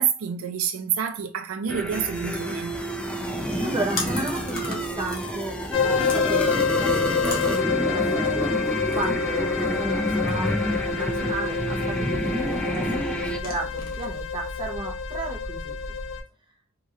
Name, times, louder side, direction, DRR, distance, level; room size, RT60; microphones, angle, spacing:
voice 1, 0.0-2.7, right 8 dB, 80° right, 0.4 m, -27 dB
sound 1, 1.7-13.4, equal, 5° left, 0.3 m, -28 dB
sound 2, 2.1-14.7, left 3 dB, 40° left, 0.8 m, -41 dB
voice 2, 3.1-6.9 7.2-15.8, right 2 dB, 20° right, 0.7 m, -34 dB
sound 3, 5.7-16.2, left 5 dB, 65° left, 1.1 m, -27 dB
3.0 x 2.9 x 2.4 m
head